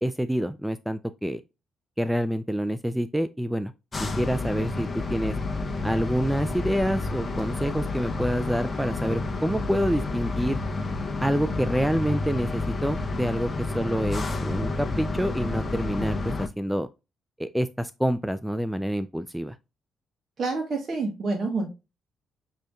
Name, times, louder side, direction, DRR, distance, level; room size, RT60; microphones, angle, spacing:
voice 1, 0.0-1.4 2.0-3.7 4.0-5.4 5.8-10.6 11.2-13.5 13.7-16.9 17.4-19.6, equal, 5° right, 0.3 m, -27 dB
sound 1, 3.9-16.5, left 3 dB, 30° left, 0.8 m, -30 dB
voice 2, 20.4-21.7, right 3 dB, 45° right, 1.1 m, -28 dB
6.2 x 2.7 x 2.2 m
cardioid pair, 90°, 0 cm